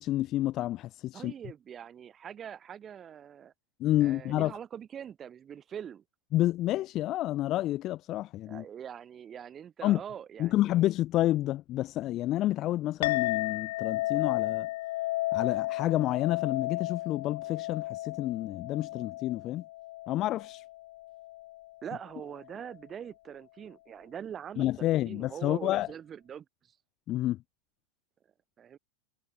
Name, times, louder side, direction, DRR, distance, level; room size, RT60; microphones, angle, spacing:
voice 1, 0.0-1.3 3.8-4.5 6.3-8.6 9.8-10.0 10.4-14.7 15.3-19.6 20.1-20.6 24.6-25.9 27.1-27.4, left 15 dB, 35° left, 0.4 m, -29 dB
voice 2, 1.1-3.5 4.0-6.0 8.5-10.8 21.8-26.4 28.6-28.8, right 8 dB, 25° right, 2.9 m, -43 dB
Chink clink, 13.0-21.7, left 17 dB, 55° left, 0.9 m, -33 dB
figure-of-eight pair, 90°, 0 cm